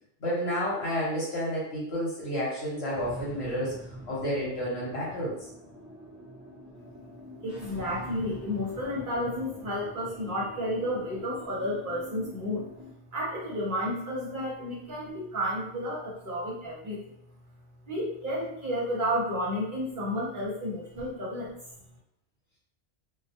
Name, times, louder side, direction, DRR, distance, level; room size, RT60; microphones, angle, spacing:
voice 1, 0.2-5.5, equal, 65° left, -6 dB, 1.0 m, -31 dB
sound 1, 2.9-12.9, equal, 30° right, 0.3 m, -45 dB
voice 2, 7.4-12.7 13.1-17.0 17.9-21.6, equal, 50° right, -5 dB, 0.7 m, -31 dB
2.2 x 2.1 x 2.7 m, 0.74 s
omnidirectional pair, 1.2 m